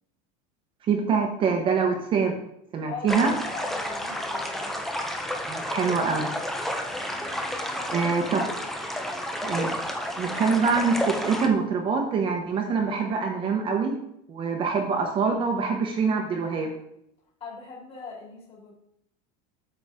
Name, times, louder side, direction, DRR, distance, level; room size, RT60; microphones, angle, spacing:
voice 1, 0.9-2.4 2.7-3.3 5.5-6.3 7.9-8.5 9.4-9.8 10.2-14.0 14.3-16.7, right 5 dB, 30° right, 2 dB, 1.0 m, -25 dB
voice 2, 2.9-4.8 7.7-8.5 17.4-18.7, left 4 dB, 35° left, -3 dB, 3.1 m, -41 dB
sound 1, 3.1-11.5, equal, ahead, 0.7 m, -31 dB
8.6 x 6.6 x 3.7 m, 0.77 s
supercardioid pair, 160°, 18 cm